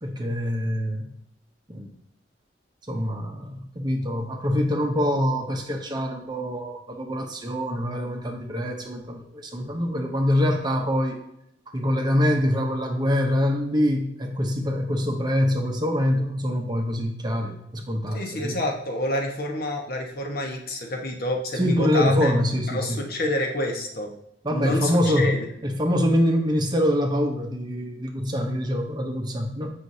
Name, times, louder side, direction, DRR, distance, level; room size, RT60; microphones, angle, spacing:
voice 1, 0.0-1.1 1.7-1.9 2.9-11.2 11.7-18.6 21.6-23.0 24.4-29.7, equal, 25° right, 2 dB, 0.8 m, -25 dB
voice 2, 18.1-22.3 22.7-24.1 24.5-25.5, left 1 dB, 55° left, 1 dB, 1.1 m, -28 dB
8.0 x 5.7 x 2.7 m, 0.77 s
head